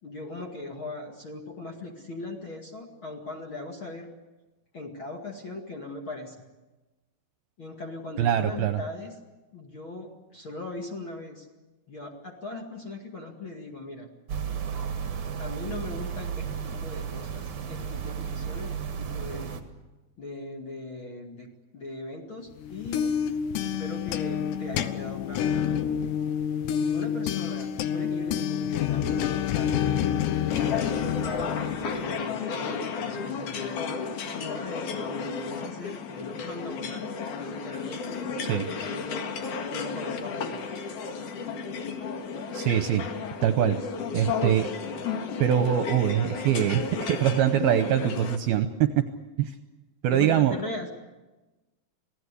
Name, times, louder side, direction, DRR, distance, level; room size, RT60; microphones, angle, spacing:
voice 1, 0.0-4.1 4.7-6.4 7.6-9.1 9.5-11.5 11.9-14.1 15.1-19.6 20.2-21.5 21.7-23.2 23.6-26.1 26.7-37.0 37.4-39.2 39.7-40.6 50.1-50.9, left 2 dB, 40° left, 1 dB, 2.1 m, -39 dB
voice 2, 8.2-8.8 38.5-38.7 42.5-43.0 43.4-43.8 44.1-44.7 45.4-49.0 49.4-49.5 50.0-50.6, right 10 dB, 75° right, 8 dB, 2.5 m, -23 dB
sound 1, 14.3-19.6, right 7 dB, 50° right, 1.7 m, -33 dB
sound 2, 22.6-32.3, left 9 dB, 80° left, 3.0 m, -28 dB
sound 3, 30.5-48.4, left 5 dB, 55° left, 2.8 m, -33 dB
27.0 x 18.0 x 8.3 m, 1.1 s
omnidirectional pair, 5.0 m